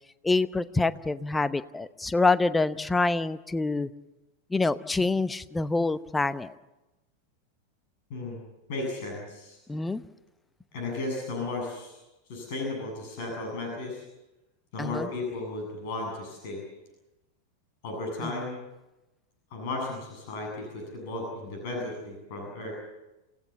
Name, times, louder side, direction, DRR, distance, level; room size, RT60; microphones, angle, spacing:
voice 1, 0.2-3.9 4.5-6.5 9.7-10.0 14.8-15.1 18.2-18.3, left 3 dB, 10° left, 15 dB, 0.8 m, -26 dB
voice 2, 8.7-9.6 10.7-12.0 12.3-14.1 14.7-16.6 17.8-18.6 19.5-22.8, left 2 dB, 50° left, 1 dB, 7.5 m, -34 dB
28.0 x 17.0 x 7.2 m, 1.0 s
figure-of-eight pair, 90°, 0 cm